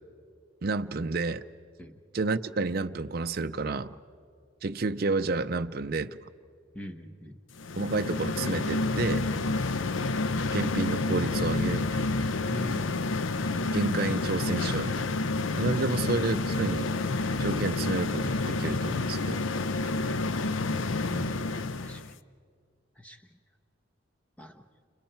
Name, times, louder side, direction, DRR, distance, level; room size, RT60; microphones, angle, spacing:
voice 1, 0.6-1.4 2.1-3.9 4.6-6.2 7.8-9.3 10.5-12.0 13.5-15.1 15.5-16.9 17.4-19.5 21.1-21.4, right 3 dB, 50° right, 9 dB, 0.5 m, -30 dB
voice 2, 6.7-7.4 12.5-12.9 19.9-20.0 21.8-22.1 23.0-23.2 24.4-24.6, left 1 dB, 5° left, 5 dB, 1.1 m, -41 dB
sound 1, 7.6-22.1, left 3 dB, 80° left, 0.6 m, -29 dB
30.0 x 28.0 x 4.5 m, 2.2 s
head